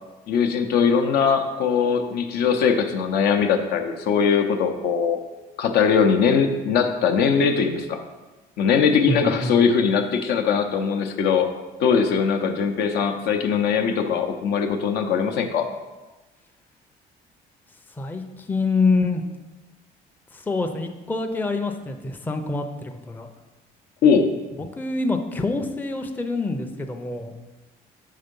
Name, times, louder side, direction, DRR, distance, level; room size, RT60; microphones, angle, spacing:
voice 1, 0.3-5.2 5.6-8.0 8.6-11.5 11.8-15.7 24.0-24.3, left 6 dB, 75° left, 5 dB, 0.7 m, -21 dB
voice 2, 9.1-9.6 17.9-19.2 20.3-23.3 24.6-27.3, left 3 dB, 10° left, 5 dB, 0.5 m, -26 dB
5.6 x 3.6 x 5.3 m, 1.2 s
cardioid pair, 110°, 17 cm